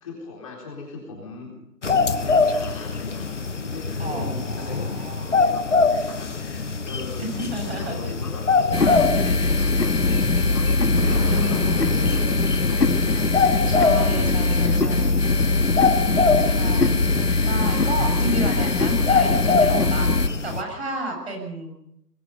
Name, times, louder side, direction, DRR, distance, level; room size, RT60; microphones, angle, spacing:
voice 1, 0.0-1.5 2.2-10.7 11.4-13.3 13.9-15.3, left 3 dB, 20° left, -2 dB, 4.0 m, -39 dB
sound 1, 1.8-20.6, left 4 dB, 45° left, 1.4 m, -25 dB
voice 2, 4.0-5.4 7.2-8.0 8.8-9.0 11.3-12.1 13.6-15.2 16.1-20.2 20.4-21.7, right 1 dB, 40° right, 2 dB, 7.1 m, -32 dB
sound 2, 8.7-20.3, left 3 dB, 70° left, 1.9 m, -21 dB
Explosion, 10.9-13.0, left 1 dB, 5° right, 1.2 m, -31 dB
22.0 x 22.0 x 5.4 m, 0.79 s
figure-of-eight pair, 160°, 49 cm